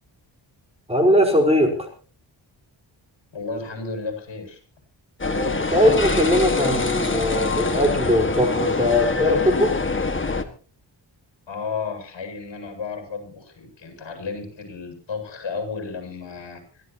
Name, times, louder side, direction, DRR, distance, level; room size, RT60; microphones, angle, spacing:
voice 1, 0.9-1.9 5.2-9.8, equal, 15° right, 2 dB, 4.6 m, -20 dB
voice 2, 3.3-4.6 11.5-16.8, left 4 dB, 65° left, 5 dB, 7.9 m, -33 dB
sound 1, 5.2-10.4, left 3 dB, 25° left, 1.9 m, -24 dB
25.0 x 16.0 x 3.0 m, 0.38 s
wide cardioid pair, 145°, 46 cm